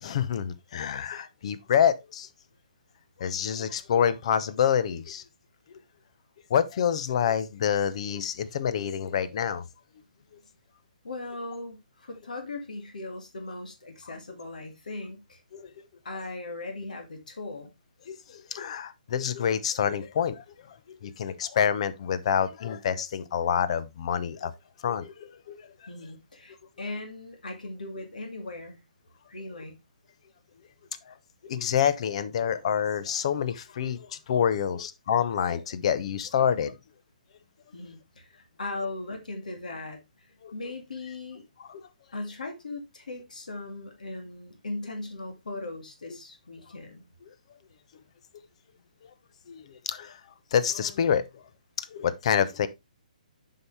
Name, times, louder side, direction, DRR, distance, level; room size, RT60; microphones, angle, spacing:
voice 1, 0.0-2.3 3.2-5.2 6.5-9.6 15.5-15.7 18.1-20.4 20.9-24.5 24.8-25.6 31.4-36.7 40.4-40.5 49.5-50.2 50.5-51.2 51.8-52.7, left 8 dB, 45° left, 0.8 m, -27 dB
voice 2, 11.0-15.4 16.0-17.7 25.9-28.8 29.3-29.8 37.7-40.0 40.5-41.4 42.1-47.1, left 2 dB, 70° left, 2.2 m, -38 dB
8.0 x 5.7 x 3.3 m
figure-of-eight pair, 135°, 4 cm